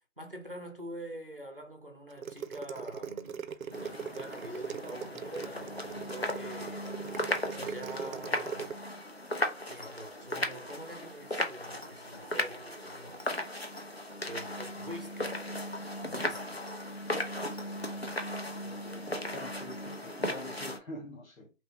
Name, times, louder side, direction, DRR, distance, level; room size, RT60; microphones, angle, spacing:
voice 1, 0.2-7.1 7.5-8.8 9.7-13.5 14.3-15.4 16.0-16.6 17.7-18.1, equal, 45° right, 0.5 m, -45 dB
sound 1, 2.1-8.7, right 7 dB, 90° right, 0.5 m, -40 dB
sound 2, 3.7-20.8, left 1 dB, 50° left, 0.5 m, -37 dB
voice 2, 18.6-21.5, left 1 dB, 85° left, 1.1 m, -45 dB
3.1 x 2.0 x 2.8 m
figure-of-eight pair, 175°, 40 cm